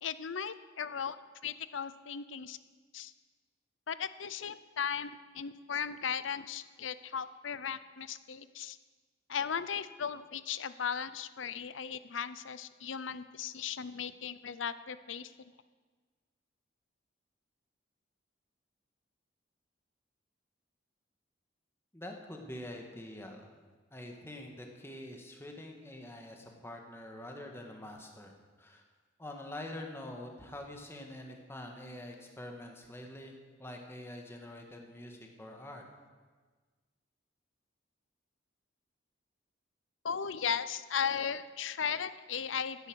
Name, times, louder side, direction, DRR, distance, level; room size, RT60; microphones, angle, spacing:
voice 1, 0.0-1.2 1.4-2.6 2.9-3.1 3.9-8.8 9.3-15.3 40.0-42.9, left 7 dB, 80° left, 14 dB, 0.7 m, -36 dB
voice 2, 21.9-23.5 23.9-28.3 28.6-28.8 29.2-35.8, left 1 dB, 15° left, 2 dB, 1.8 m, -45 dB
16.0 x 10.0 x 6.4 m, 1.4 s
head